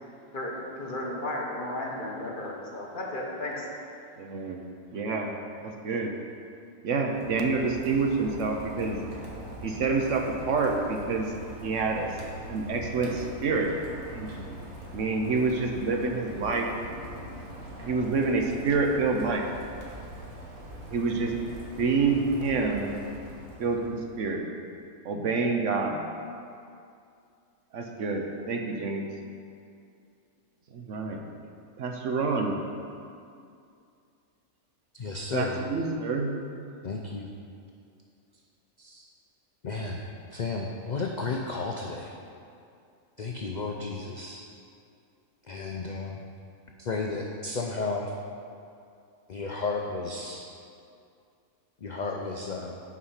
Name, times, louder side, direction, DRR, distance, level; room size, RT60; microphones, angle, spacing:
voice 1, 0.3-3.7, left 1 dB, 40° left, -2 dB, 1.1 m, -34 dB
voice 2, 4.2-4.6 4.9-5.3 5.6-6.1 6.8-9.0 9.6-11.3 11.6-12.2 12.5-13.8 14.1-14.6 14.9-16.7 17.8-19.4 20.9-21.4 21.8-22.9 23.6-24.4 25.0-26.0 27.7-29.1 30.7-31.2 31.8-32.6 35.3-36.3, right 4 dB, 65° right, 2 dB, 1.0 m, -27 dB
Rain, 6.9-24.2, right 1 dB, 90° right, 1.7 m, -42 dB
voice 3, 34.9-35.6 36.8-37.3 38.8-39.0 39.6-40.0 40.3-42.1 43.2-44.4 45.5-46.2 46.8-48.1 49.3-50.5 51.8-52.7, left 3 dB, 55° left, 0 dB, 0.5 m, -33 dB
8.4 x 5.1 x 5.6 m, 2.4 s
omnidirectional pair, 1.4 m